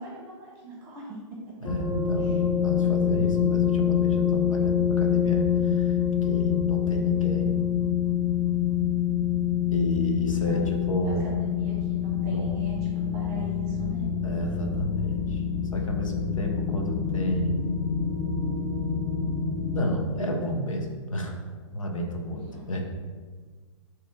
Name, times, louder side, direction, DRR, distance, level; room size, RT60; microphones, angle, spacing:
voice 1, 0.0-1.7 2.2-2.4 10.4-10.7 11.0-12.8 13.1-14.1 22.3-22.7, right 2 dB, 15° right, -4 dB, 1.1 m, -42 dB
voice 2, 1.6-7.6 9.7-11.3 12.1-12.6 14.2-15.4 15.7-17.6 19.7-21.3 21.7-22.8, equal, 85° left, 2 dB, 0.7 m, -31 dB
sound 1, 1.6-19.8, left 8 dB, 15° left, 0.5 m, -26 dB
3.6 x 3.0 x 3.5 m, 1.5 s
hypercardioid pair, 125°, 16 cm